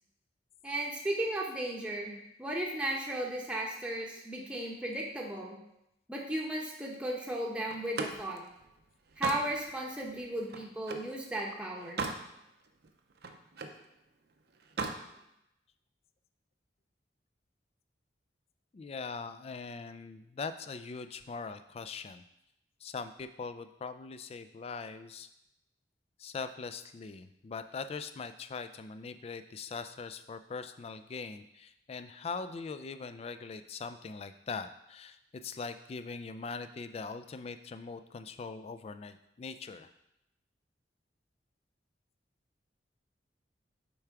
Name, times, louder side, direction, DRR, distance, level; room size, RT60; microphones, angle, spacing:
voice 1, 0.6-5.6 6.1-8.4 9.2-12.1, right 1 dB, 5° right, -2 dB, 0.8 m, -35 dB
Slam, 7.7-11.1 11.6-12.3 12.7-13.8 14.6-15.0, right 4 dB, 60° right, 0.6 m, -38 dB
voice 2, 18.7-22.2 22.8-25.3 26.2-39.9, left 4 dB, 35° left, 11 dB, 0.3 m, -41 dB
7.0 x 3.4 x 4.6 m, 0.84 s
head